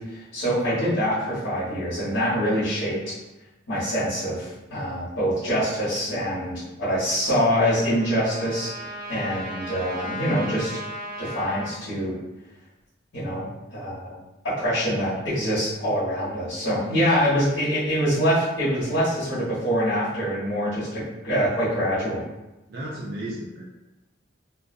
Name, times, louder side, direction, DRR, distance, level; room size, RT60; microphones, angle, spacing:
voice 1, 0.0-3.2 3.7-10.7 11.2-12.1 13.1-14.1 14.4-22.2, equal, 75° left, -12 dB, 1.1 m, -25 dB
voice 2, 0.6-0.9 22.7-23.6, right 1 dB, 55° right, -6 dB, 0.4 m, -34 dB
Trumpet, 7.2-11.7, equal, 5° left, 0.8 m, -37 dB
2.4 x 2.3 x 2.5 m, 1.0 s
head